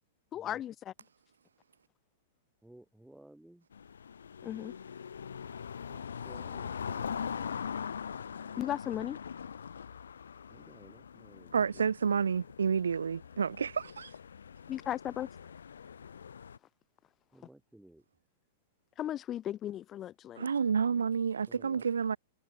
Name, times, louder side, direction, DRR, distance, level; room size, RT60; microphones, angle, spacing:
voice 1, 0.3-0.9 4.4-4.7 8.6-9.2 14.7-15.3 19.0-20.5, left 11 dB, 30° left, 0.6 m, -36 dB
voice 2, 2.6-3.7 5.9-7.6 10.5-11.9 17.3-18.1 21.5-21.8, right 1 dB, 5° right, 7.3 m, -56 dB
sound 1, 3.7-16.6, left 7 dB, 85° left, 0.4 m, -42 dB
voice 3, 11.5-14.1 20.4-22.2, right 6 dB, 90° right, 0.5 m, -30 dB
hypercardioid pair, 115°, 0 cm